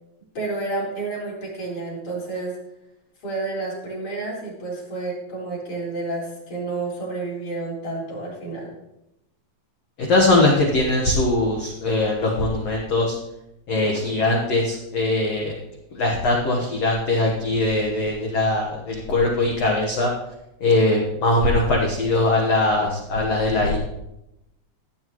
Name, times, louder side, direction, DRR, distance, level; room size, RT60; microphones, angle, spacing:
voice 1, 0.3-2.6 3.2-8.7, right 3 dB, 45° left, -6 dB, 5.0 m, -30 dB
voice 2, 10.0-13.2 13.7-15.5 15.9-20.1 20.6-23.8, left 2 dB, 75° left, -1 dB, 1.5 m, -21 dB
15.5 x 8.8 x 3.1 m, 0.88 s
omnidirectional pair, 5.0 m